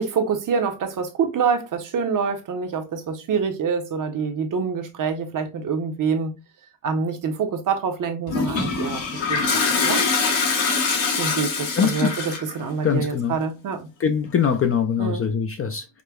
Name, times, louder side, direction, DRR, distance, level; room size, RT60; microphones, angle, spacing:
voice 1, 0.0-6.3 6.8-9.0 9.3-10.0 11.2-13.9 15.0-15.2, right 5 dB, 45° right, 0.7 m, -26 dB
Toilet flush, 8.3-12.6, left 4 dB, 80° left, 1.3 m, -23 dB
voice 2, 11.8-12.1 12.8-13.4 14.0-15.9, left 7 dB, 35° left, 0.4 m, -22 dB
4.9 x 2.1 x 2.2 m
cardioid pair, 120°, 45 cm